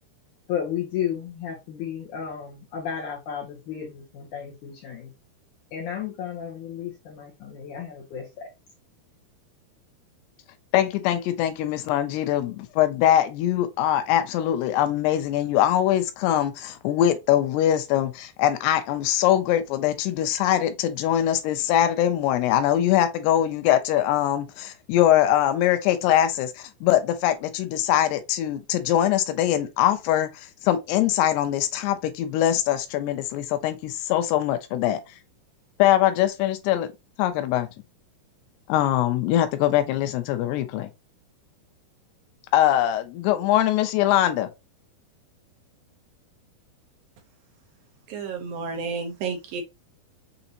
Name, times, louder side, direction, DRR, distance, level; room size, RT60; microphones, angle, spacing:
voice 1, 0.5-5.1 5.7-8.5, left 8 dB, 75° left, 1.9 m, -33 dB
voice 2, 10.7-35.0 35.8-36.9 37.2-37.7 38.7-40.9 42.5-44.5, left 12 dB, 90° left, 2.7 m, -22 dB
voice 3, 48.1-49.6, right 5 dB, 75° right, 2.2 m, -31 dB
6.8 x 2.7 x 2.8 m
omnidirectional pair, 4.7 m